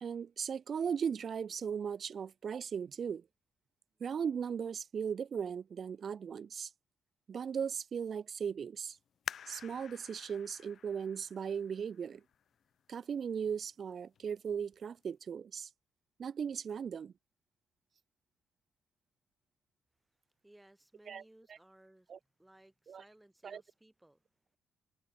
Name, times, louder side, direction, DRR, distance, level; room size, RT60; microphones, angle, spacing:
voice 1, 0.0-3.2 4.0-6.7 7.3-9.0 9.5-12.2 12.9-15.7 16.2-17.1 21.1-21.2 22.1-22.2 22.9-23.0 23.4-23.6, right 7 dB, 50° right, 0.3 m, -37 dB
sound 1, 9.3-12.6 13.2-13.3 14.0-14.3 14.7-14.8, left 8 dB, 60° left, 0.4 m, -48 dB
voice 2, 20.4-22.1 22.4-24.2, right 1 dB, 10° right, 2.0 m, -62 dB
cardioid pair, 90°, 0 cm